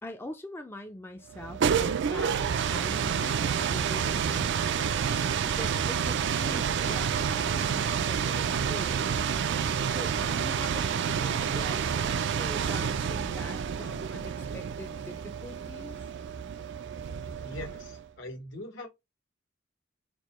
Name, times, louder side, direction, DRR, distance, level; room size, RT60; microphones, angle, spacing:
voice 1, 0.0-4.6 5.4-9.1 9.9-16.1, left 1 dB, 10° left, 0.4 m, -43 dB
sound 1, 1.3-18.0, right 7 dB, 65° right, 0.4 m, -29 dB
voice 2, 17.4-18.9, left 1 dB, 70° left, 1.5 m, -41 dB
4.4 x 2.3 x 2.9 m
head